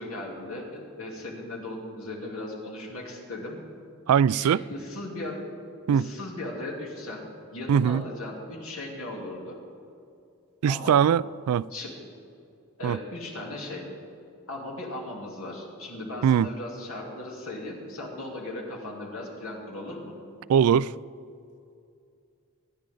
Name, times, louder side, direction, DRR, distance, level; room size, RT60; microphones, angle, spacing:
voice 1, 0.0-3.6 4.3-5.4 5.9-9.6 10.7-11.0 11.7-12.0 12.8-13.8 14.5-20.1, left 1 dB, 80° left, -2 dB, 3.1 m, -37 dB
voice 2, 4.1-4.6 5.9-6.0 7.7-8.0 10.6-11.7 12.8-13.0 16.2-16.5 20.5-20.9, right 8 dB, 90° right, 20 dB, 0.3 m, -21 dB
24.5 x 10.5 x 3.9 m, 2.5 s
head